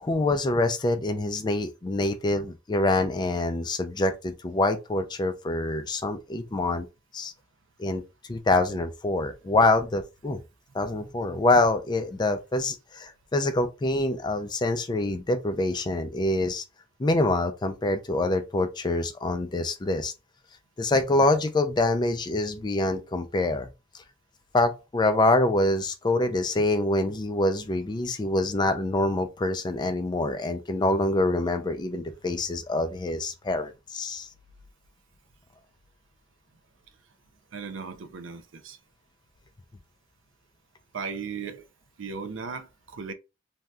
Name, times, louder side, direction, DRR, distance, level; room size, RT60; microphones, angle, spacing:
voice 1, 0.0-6.9 7.1-7.3 7.8-8.0 8.3-10.4 10.7-16.6 17.0-20.1 20.8-23.7 24.5-34.3, left 2 dB, 25° left, 0.4 m, -25 dB
voice 2, 37.5-38.8 40.9-41.7 42.0-43.1, right 5 dB, 90° right, 0.5 m, -36 dB
3.3 x 2.6 x 2.3 m
head